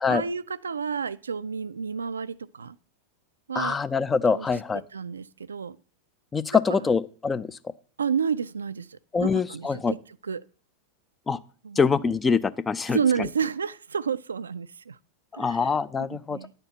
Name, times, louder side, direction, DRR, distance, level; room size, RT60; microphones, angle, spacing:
voice 1, 0.1-2.8 3.5-3.8 4.3-4.5 4.7-5.8 6.7-6.9 8.0-10.0 10.2-10.4 11.6-11.9 12.9-15.0 15.3-15.7 16.0-16.5, right 6 dB, 70° right, 0.4 m, -30 dB
voice 2, 3.5-4.8 6.3-7.6 9.1-9.9 11.3-11.4 11.8-13.0 15.3-16.4, left 5 dB, 15° left, 0.5 m, -24 dB
10.5 x 4.5 x 7.8 m
figure-of-eight pair, 90°, 0 cm